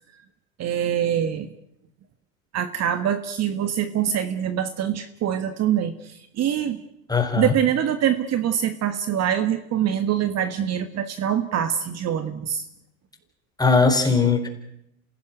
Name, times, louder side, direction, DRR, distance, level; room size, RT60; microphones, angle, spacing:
voice 1, 0.6-1.5 2.5-6.8 7.4-12.6 14.0-14.3, right 9 dB, 40° right, 10 dB, 1.6 m, -24 dB
voice 2, 7.1-7.5 13.6-14.5, left 4 dB, 10° left, 5 dB, 4.3 m, -19 dB
27.0 x 17.0 x 9.1 m, 0.82 s
hypercardioid pair, 105°, 42 cm